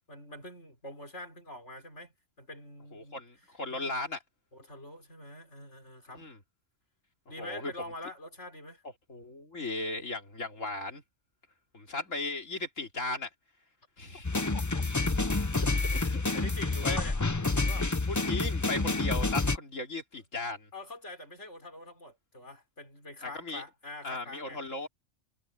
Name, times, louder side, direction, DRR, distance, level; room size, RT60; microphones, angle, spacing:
voice 1, 0.1-3.2 3.7-3.9 4.5-6.3 7.3-8.8 14.3-14.8 16.3-17.9 20.7-24.6, left 1 dB, 65° left, 5.6 m, -45 dB
voice 2, 2.9-4.2 6.1-6.4 7.4-7.7 9.1-11.0 11.7-13.3 14.0-14.3 15.9-16.2 16.8-17.0 18.1-20.7 23.2-23.6 24.0-24.9, left 2 dB, 85° left, 3.6 m, -36 dB
sound 1, 14.2-19.6, left 3 dB, 20° left, 0.6 m, -28 dB
omnidirectional pair, 1.3 m